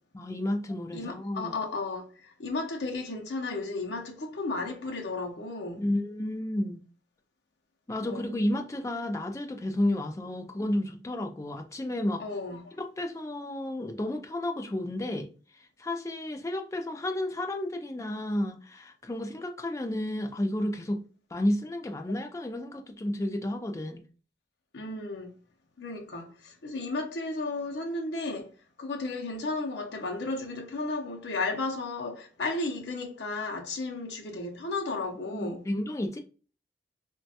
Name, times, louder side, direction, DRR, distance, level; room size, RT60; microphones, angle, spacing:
voice 1, 0.1-1.5 5.8-6.8 7.9-12.2 12.8-15.3 15.8-21.0 21.3-24.0 35.3-36.2, left 1 dB, 15° left, 0.3 m, -31 dB
voice 2, 0.9-5.8 8.0-8.3 12.2-12.8 24.7-25.3 25.8-28.5 28.8-35.6, left 3 dB, 70° left, 0.6 m, -34 dB
3.0 x 2.2 x 2.7 m
head